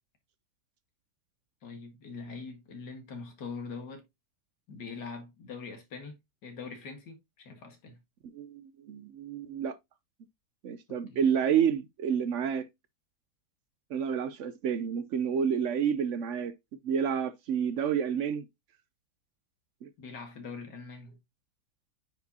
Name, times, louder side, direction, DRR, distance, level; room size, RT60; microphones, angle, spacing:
voice 1, 1.6-4.0 4.7-8.0 10.9-11.2 20.0-21.2, left 4 dB, 90° left, 2.2 m, -43 dB
voice 2, 8.3-9.8 10.6-12.7 13.9-16.5 16.8-18.5 19.8-19.9, right 7 dB, 65° right, 0.7 m, -29 dB
9.2 x 4.7 x 2.7 m
omnidirectional pair, 1.8 m